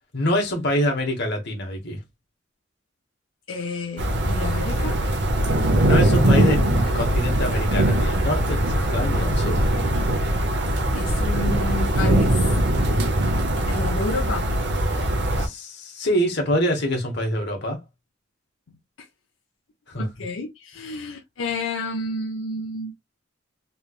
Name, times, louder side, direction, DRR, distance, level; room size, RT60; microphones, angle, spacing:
voice 1, 0.1-2.0 5.8-9.6 15.3-17.8 19.9-20.0, equal, 60° left, 1.4 m, -25 dB
voice 2, 3.5-5.0 10.9-12.5 13.7-14.5 19.9-22.9, left 3 dB, 85° left, 0.6 m, -30 dB
sound 1, 4.0-15.5, right 1 dB, 60° right, 0.8 m, -21 dB
3.3 x 3.2 x 2.4 m
head